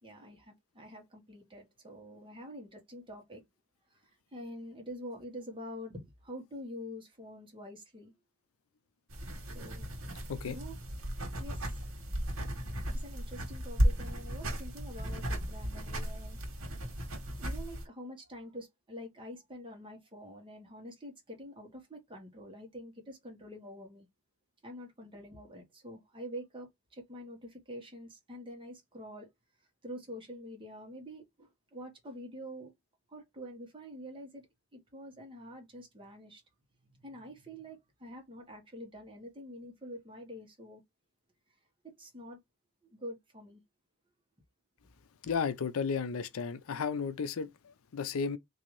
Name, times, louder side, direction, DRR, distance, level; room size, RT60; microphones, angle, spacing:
voice 1, 0.0-3.4 3.9-8.1 9.4-9.9 10.5-10.8 11.4-11.6 12.9-16.4 17.4-24.1 24.6-29.3 29.8-32.7 33.1-34.5 34.7-36.4 37.0-40.8 41.8-42.4 42.8-43.6, equal, 25° right, 1.2 m, -46 dB
sound 1, 9.1-17.9, equal, 75° right, 1.4 m, -35 dB
voice 2, 45.2-48.4, left 5 dB, 75° left, 0.5 m, -34 dB
3.7 x 2.7 x 3.1 m
head